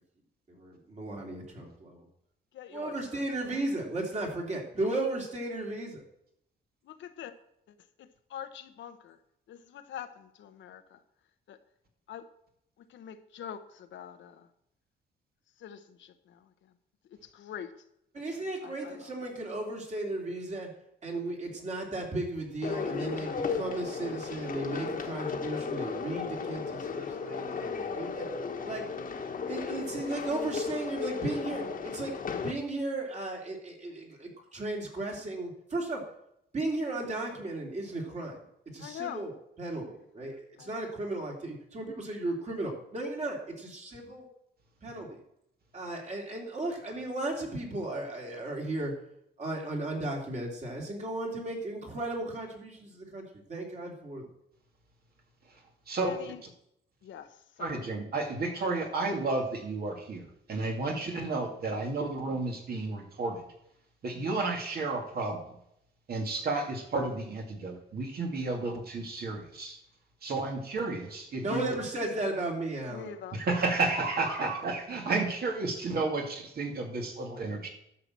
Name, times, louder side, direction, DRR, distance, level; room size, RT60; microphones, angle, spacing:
voice 1, 0.5-2.1 2.7-6.0 18.1-20.7 21.0-28.3 28.6-28.8 29.5-32.1 32.4-36.0 36.5-38.4 38.7-39.3 39.6-44.3 44.8-45.2 45.7-48.9 49.4-53.2 53.5-54.3 71.4-73.1, right 2 dB, 35° right, 0 dB, 3.1 m, -35 dB
voice 2, 2.5-3.6 6.8-7.3 7.7-9.2 9.5-11.0 11.5-11.6 12.1-12.3 12.9-14.5 15.6-16.5 17.1-17.7 18.3-19.1 38.8-39.2 40.6-40.9 56.1-56.4 57.0-57.9 72.9-73.5, left 9 dB, 75° left, 9 dB, 1.0 m, -44 dB
sound 1, 22.6-32.5, left 5 dB, 45° left, 1.4 m, -35 dB
voice 3, 57.6-60.2 60.5-63.4 64.0-65.4 66.1-69.8 70.2-71.8 73.3-77.7, right 3 dB, 55° right, 2 dB, 2.4 m, -32 dB
11.5 x 5.8 x 7.5 m, 0.77 s
cardioid pair, 130°, 19 cm